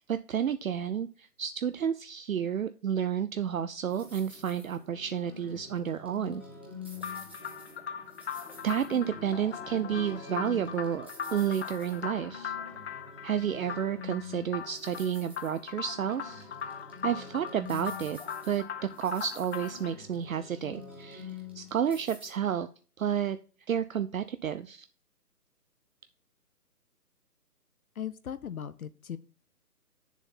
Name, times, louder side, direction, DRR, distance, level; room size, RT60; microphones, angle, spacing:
voice 1, 0.1-6.4 8.6-12.5 13.2-16.5 17.0-18.2 18.4-22.7 23.0-23.4 23.7-24.9, right 8 dB, 60° right, 11 dB, 0.7 m, -31 dB
sound 1, 3.9-22.3, left 5 dB, 10° right, 0.6 m, -47 dB
sound 2, 7.0-19.9, left 8 dB, 45° left, 1.0 m, -40 dB
sound 3, 7.6-13.2 13.9-14.4 15.6-15.7 16.4-16.7 18.9-19.5 20.2-20.3 20.5-20.6, left 4 dB, 90° left, 1.3 m, -51 dB
voice 2, 28.0-29.2, left 9 dB, 60° left, 14 dB, 0.7 m, -38 dB
7.9 x 7.1 x 4.3 m, 0.37 s
figure-of-eight pair, 150°, 47 cm